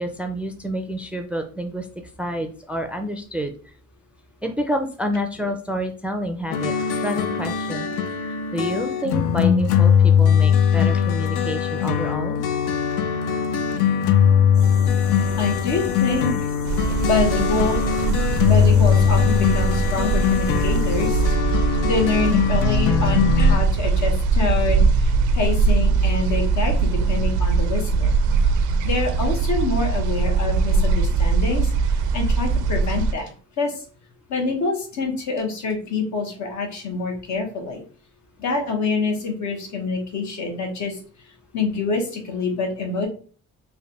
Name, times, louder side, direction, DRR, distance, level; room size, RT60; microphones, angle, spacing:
voice 1, 0.0-1.9 2.2-3.7 4.4-6.7 7.0-7.9 8.2-12.4, equal, 5° right, 5 dB, 0.4 m, -28 dB
sound 1, 6.5-23.6, left 8 dB, 90° left, 0.5 m, -20 dB
sound 2, 14.5-21.3, left 1 dB, 45° left, 1.5 m, -36 dB
voice 2, 15.4-16.3 17.0-17.8 18.4-21.2 21.8-28.1 28.8-33.3 33.6-33.7 34.3-37.8 38.4-41.0 41.5-43.1, left 4 dB, 70° left, 3 dB, 1.1 m, -26 dB
sound 3, 16.7-33.1, right 4 dB, 80° right, 0.4 m, -21 dB
3.3 x 2.2 x 3.8 m, 0.41 s
cardioid pair, 90°, 30 cm